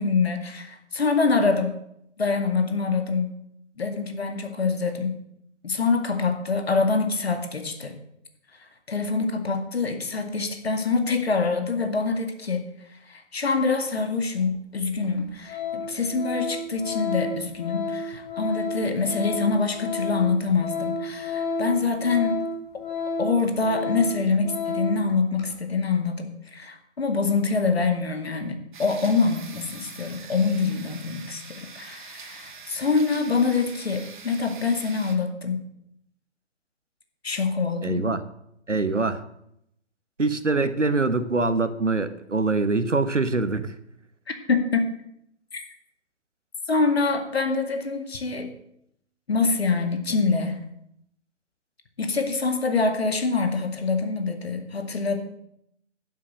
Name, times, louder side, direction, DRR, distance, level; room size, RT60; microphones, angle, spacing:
voice 1, 0.0-1.8 2.2-3.3 3.8-5.2 5.6-8.0 8.9-12.6 13.1-22.4 23.2-35.6 37.2-38.1 44.5-44.9 45.5-45.6 46.7-48.5 49.3-50.6 52.0-55.2, left 4 dB, 60° left, 7 dB, 2.2 m, -25 dB
Organ, 14.4-14.5 15.0-15.2 15.5-25.0 25.4-25.5, left 3 dB, 15° left, 1.7 m, -31 dB
sound 1, 28.7-35.2, right 5 dB, 40° right, 1.7 m, -44 dB
voice 2, 37.8-38.2 38.7-39.2 40.2-43.7, right 3 dB, 85° right, 12 dB, 1.2 m, -24 dB
11.5 x 7.6 x 7.6 m, 0.76 s
figure-of-eight pair, 140°, 36 cm